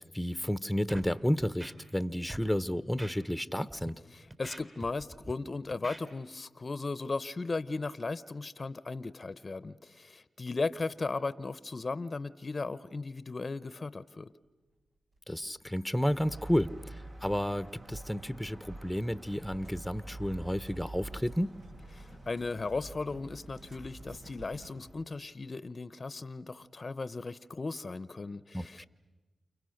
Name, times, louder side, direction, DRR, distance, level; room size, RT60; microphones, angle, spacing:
voice 1, 0.0-4.0 15.3-21.6 28.5-28.9, equal, 5° left, 13 dB, 1.0 m, -32 dB
Scratching (performance technique), 0.9-1.1 1.4-2.0 2.3-2.5 3.0-3.1 3.7-3.9 4.3-5.3 5.7-6.0, right 1 dB, 35° right, 4.0 m, -44 dB
voice 2, 4.1-14.3 22.0-28.8, left 3 dB, 45° left, 17 dB, 0.8 m, -36 dB
sound 1, 15.1-24.8, right 1 dB, 80° right, 5.1 m, -55 dB
sound 2, 16.1-25.0, right 1 dB, 65° right, 5.5 m, -47 dB
29.5 x 29.0 x 6.5 m, 1.2 s
cardioid pair, 45°, 0 cm